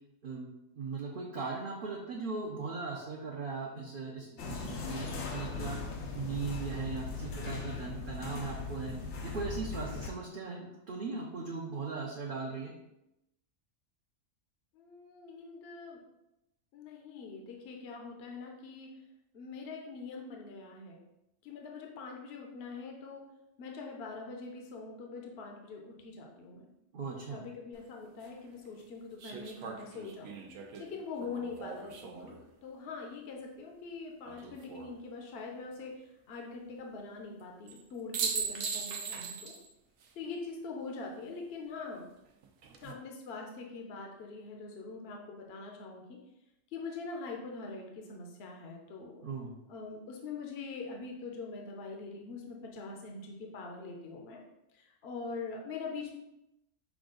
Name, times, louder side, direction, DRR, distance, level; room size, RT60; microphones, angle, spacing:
voice 1, 0.7-5.8 6.1-8.9 9.2-12.7 26.9-27.4 49.2-49.5, right 4 dB, 50° right, -3 dB, 0.7 m, -38 dB
sound 1, 4.4-10.1, left 4 dB, 85° left, 1.1 m, -39 dB
voice 2, 14.7-16.0 16.7-18.9 19.3-21.0 21.4-23.2 23.6-26.7 27.3-30.3 30.8-32.4 32.6-39.5 40.2-42.0 42.8-46.2 46.7-49.3 49.7-54.4 54.7-56.1, left 4 dB, 60° left, 1 dB, 0.9 m, -43 dB
sound 2, 27.7-27.8 29.2-32.4 34.2-34.9 37.7-37.8 38.1-39.7 40.0-40.1 42.4-42.9, right 6 dB, 90° right, 1.0 m, -39 dB
6.0 x 2.4 x 3.7 m, 0.89 s
omnidirectional pair, 1.3 m